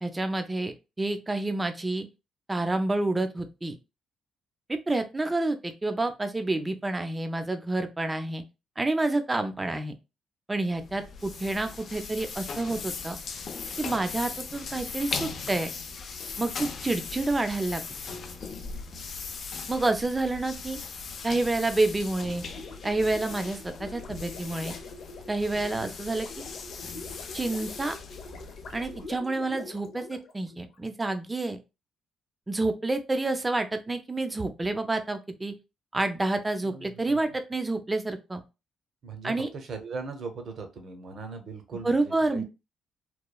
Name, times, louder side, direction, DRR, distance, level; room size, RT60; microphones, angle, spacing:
voice 1, 0.0-2.1 2.5-3.8 4.7-8.4 8.8-9.9 10.5-13.2 13.8-15.7 16.4-18.0 19.7-20.8 21.2-22.4 22.8-24.7 25.3-26.3 27.3-27.9 28.7-31.6 32.5-35.5 35.9-38.4 39.2-39.5 41.8-42.4, right 2 dB, 20° right, 8 dB, 0.4 m, -28 dB
sound 1, 10.7-29.2, left 5 dB, 55° left, 0.5 m, -39 dB
Gurgling, 22.5-30.9, left 3 dB, 80° left, 0.8 m, -44 dB
voice 2, 36.6-37.3 39.0-42.4, right 4 dB, 60° right, 6 dB, 0.7 m, -39 dB
3.0 x 2.2 x 2.2 m, 0.27 s
cardioid pair, 90°, 0 cm